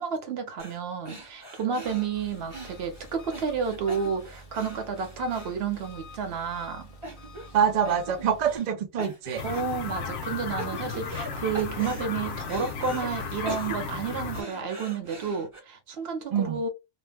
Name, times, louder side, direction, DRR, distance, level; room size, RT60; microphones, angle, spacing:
voice 1, 0.0-6.9 9.4-16.7, right 5 dB, 60° right, 0.9 m, -31 dB
sound 1, 0.6-0.8 1.1-6.2 6.6-6.7 7.0-7.6 7.9-8.7 9.0-9.8 10.2-11.3 11.5-13.1 13.5-15.6, right 1 dB, 30° right, 0.7 m, -41 dB
Engine, 1.8-8.6, left 1 dB, 40° left, 0.5 m, -48 dB
voice 2, 7.5-9.4 16.3-16.6, right 8 dB, 75° right, 0.4 m, -25 dB
sound 2, 9.4-14.4, left 5 dB, 60° left, 0.9 m, -35 dB
2.4 x 2.1 x 3.2 m
omnidirectional pair, 1.3 m